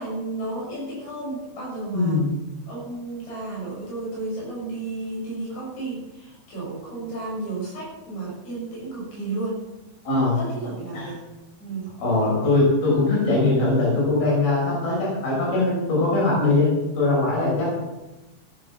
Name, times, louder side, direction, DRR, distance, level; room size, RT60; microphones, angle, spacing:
voice 1, 0.0-2.2 2.7-9.6 10.4-11.2 11.6-11.9, right 2 dB, 85° left, -5 dB, 8.8 m, -32 dB
voice 2, 1.9-2.3 10.1-10.4 10.9-11.0 12.0-17.7, left 2 dB, 65° left, -5 dB, 8.1 m, -21 dB
16.5 x 11.5 x 6.2 m, 1.1 s
omnidirectional pair, 4.7 m